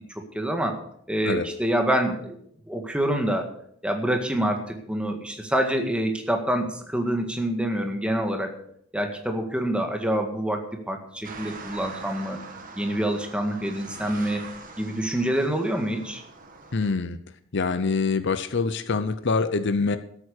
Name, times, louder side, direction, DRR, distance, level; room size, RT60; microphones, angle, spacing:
voice 1, 0.3-0.8 1.1-2.3 2.7-3.5 3.8-8.5 8.9-12.4 12.8-14.4 14.8-16.2, right 1 dB, 5° right, 4 dB, 1.8 m, -26 dB
sound 1, 11.2-16.9, right 3 dB, 40° right, 1.8 m, -42 dB
voice 2, 16.7-17.2 17.5-20.0, left 4 dB, 55° left, 11 dB, 0.7 m, -25 dB
13.5 x 8.6 x 6.6 m, 0.67 s
head